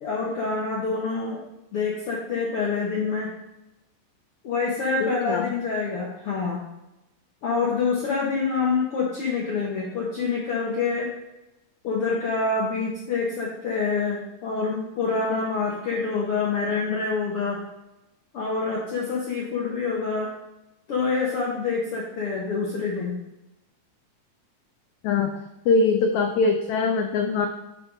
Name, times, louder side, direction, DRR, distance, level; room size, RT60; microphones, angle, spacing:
voice 1, 0.0-1.4 1.7-3.3 4.4-6.6 7.4-11.1 11.8-17.6 18.3-20.3 20.9-23.2, left 4 dB, 70° left, -3 dB, 1.4 m, -26 dB
voice 2, 5.0-5.5 25.0-25.3 25.7-27.5, left 4 dB, 85° left, 5 dB, 1.6 m, -22 dB
8.9 x 4.0 x 4.9 m, 0.95 s
omnidirectional pair, 3.9 m